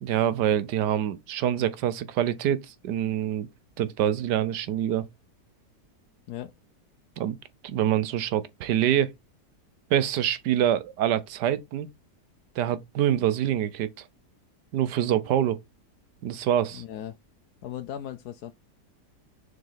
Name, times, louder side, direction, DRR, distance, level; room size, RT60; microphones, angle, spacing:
voice 1, 0.0-3.5 3.8-5.1 7.2-7.4 7.6-9.1 9.9-11.9 12.6-13.9 14.7-15.6 16.2-16.8, right 10 dB, 85° right, 1.4 m, -25 dB
voice 2, 16.7-17.2 17.6-18.5, left 11 dB, 70° left, 1.1 m, -37 dB
6.5 x 4.0 x 3.9 m
omnidirectional pair, 1.8 m